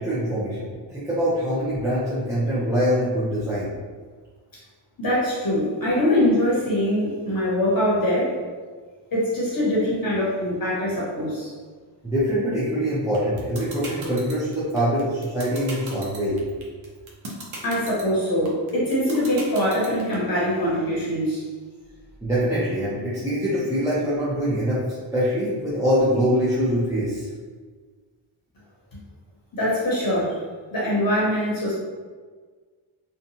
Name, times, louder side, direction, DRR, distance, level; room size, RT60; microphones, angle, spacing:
voice 1, 0.0-3.7 12.0-16.4 22.2-24.8 25.1-27.3, equal, 5° right, -11 dB, 0.4 m, -24 dB
voice 2, 5.0-8.4 9.1-11.5 17.6-21.4 29.5-30.4 30.7-31.7, left 1 dB, 45° left, -7 dB, 0.7 m, -23 dB
sound 1, 13.1-20.1, right 3 dB, 75° right, 0.7 m, -37 dB
2.7 x 2.2 x 2.7 m, 1.5 s
wide cardioid pair, 175°, 47 cm